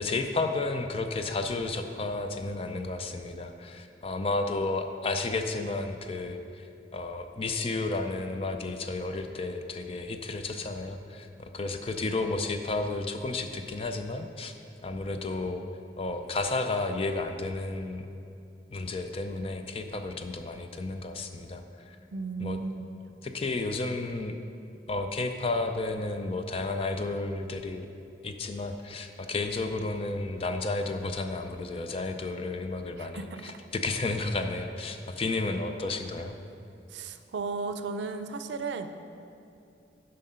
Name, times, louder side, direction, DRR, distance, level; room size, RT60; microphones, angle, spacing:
voice 1, 0.0-14.5 14.8-15.6 16.0-18.1 18.7-22.0 22.4-22.6 23.2-24.4 24.9-27.9 28.2-36.4, left 3 dB, 30° left, 6 dB, 0.4 m, -32 dB
voice 2, 22.1-22.9 33.0-33.6 36.9-38.9, right 4 dB, 80° right, 9 dB, 0.5 m, -35 dB
7.4 x 5.4 x 5.6 m, 2.6 s
head